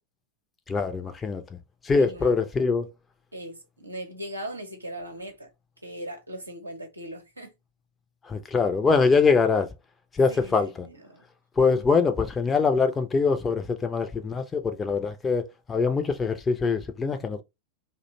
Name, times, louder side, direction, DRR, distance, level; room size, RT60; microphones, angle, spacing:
voice 1, 0.7-1.4 1.8-2.9 8.3-9.7 10.1-10.7 11.6-17.4, left 4 dB, 20° left, 0.4 m, -23 dB
voice 2, 2.0-2.3 3.3-5.5 5.8-7.5 10.3-11.2, right 1 dB, 85° right, 0.7 m, -39 dB
2.4 x 2.1 x 2.8 m
figure-of-eight pair, 90°, 0 cm